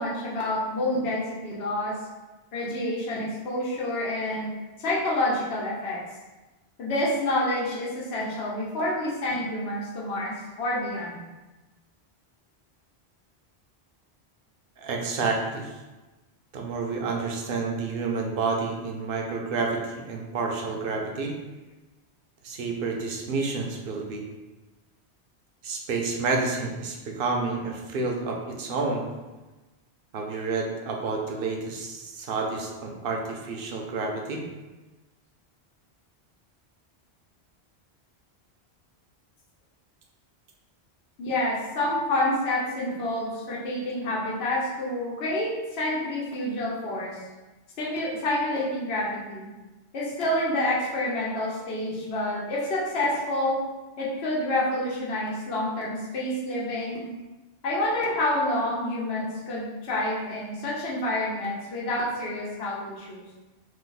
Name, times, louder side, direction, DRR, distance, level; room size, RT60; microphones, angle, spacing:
voice 1, 0.0-1.9 2.5-4.5 4.8-6.0 6.8-11.2 41.2-47.2 47.8-49.5 49.9-53.6 54.0-57.0 57.6-63.2, left 1 dB, 70° left, -5 dB, 1.0 m, -28 dB
voice 2, 14.8-15.7 16.5-21.4 22.4-24.2 25.6-29.1 30.1-34.4, right 4 dB, 65° right, 1 dB, 0.7 m, -29 dB
2.7 x 2.5 x 3.8 m, 1.2 s
omnidirectional pair, 1.1 m